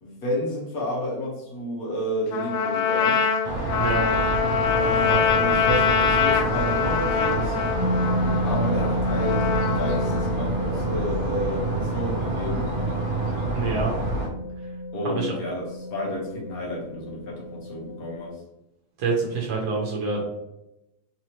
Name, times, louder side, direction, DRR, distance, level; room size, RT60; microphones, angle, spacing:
voice 1, 0.0-3.2 4.7-7.6 8.4-9.4 9.7-12.7 14.9-18.4, left 1 dB, 65° left, -3 dB, 1.6 m, -31 dB
Trumpet, 2.3-10.4, left 6 dB, 85° left, 1.2 m, -24 dB
sound 1, 3.4-14.3, right 2 dB, 65° right, 1.2 m, -28 dB
sound 2, 7.7-18.3, equal, 30° right, 1.3 m, -31 dB
voice 2, 13.5-13.9 15.0-15.3 19.0-20.3, right 4 dB, 85° right, -2 dB, 1.4 m, -26 dB
4.0 x 3.0 x 2.9 m, 0.88 s
omnidirectional pair, 1.7 m